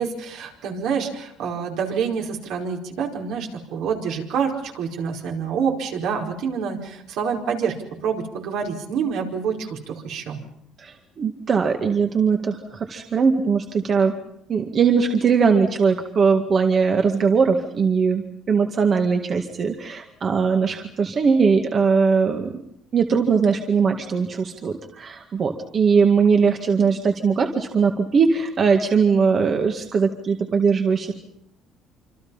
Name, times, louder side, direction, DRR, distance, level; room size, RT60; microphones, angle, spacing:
voice 1, 0.0-7.7 8.0-10.4, right 6 dB, 70° right, 1 dB, 4.9 m, -27 dB
voice 2, 10.8-14.1 14.5-22.6 22.9-31.1, right 5 dB, 35° right, 4 dB, 2.0 m, -20 dB
26.5 x 25.5 x 5.7 m, 0.74 s
cardioid pair, 120°, 0 cm